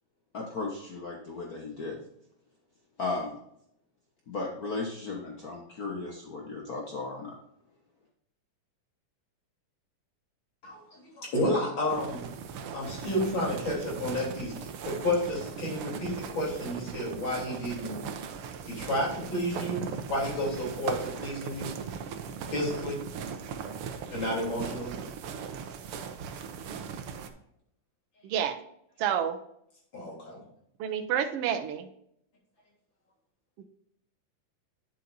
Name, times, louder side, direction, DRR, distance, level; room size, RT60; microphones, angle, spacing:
voice 1, 0.3-2.0 3.0-3.4 4.3-7.3, left 3 dB, 80° left, -1 dB, 0.8 m, -35 dB
voice 2, 10.6-12.2 12.7-18.0 18.7-19.8 20.1-21.7 22.5-23.0 24.1-25.0 29.9-30.4, left 1 dB, 35° left, -4 dB, 4.0 m, -31 dB
sound 1, 11.9-27.3, right 6 dB, 90° right, 1.2 m, -39 dB
voice 3, 28.2-28.6 29.0-29.4 30.8-31.9 33.6-33.7, right 9 dB, 70° right, 7 dB, 1.4 m, -29 dB
9.4 x 7.8 x 2.7 m, 0.73 s
omnidirectional pair, 3.6 m